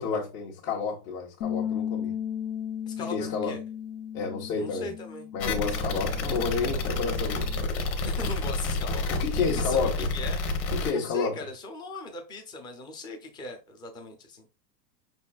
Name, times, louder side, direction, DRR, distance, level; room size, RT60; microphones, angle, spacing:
voice 1, 0.0-2.1 3.1-3.5 4.1-4.9 5.3-7.5 9.1-10.1 10.7-11.4, left 5 dB, 55° left, 1.3 m, -30 dB
Bass guitar, 1.4-7.7, left 9 dB, 90° left, 0.8 m, -36 dB
voice 2, 2.9-3.6 4.5-5.3 8.0-14.5, left 2 dB, 10° left, 0.4 m, -39 dB
sound 1, 5.4-10.9, left 3 dB, 25° left, 1.0 m, -29 dB
5.6 x 4.2 x 2.3 m
supercardioid pair, 145°, 50 cm